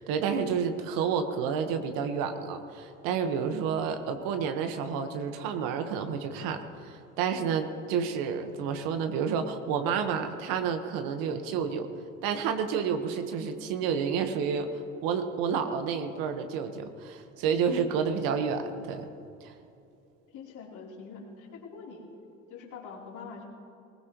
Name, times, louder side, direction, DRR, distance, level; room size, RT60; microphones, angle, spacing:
voice 1, 0.0-11.9 12.2-19.1 19.4-19.5, right 6 dB, 60° right, 7 dB, 1.4 m, -30 dB
voice 2, 20.3-22.1 22.5-23.4, left 5 dB, 50° left, -2 dB, 3.6 m, -44 dB
20.5 x 19.5 x 3.1 m, 2.6 s
hypercardioid pair, 75°, 37 cm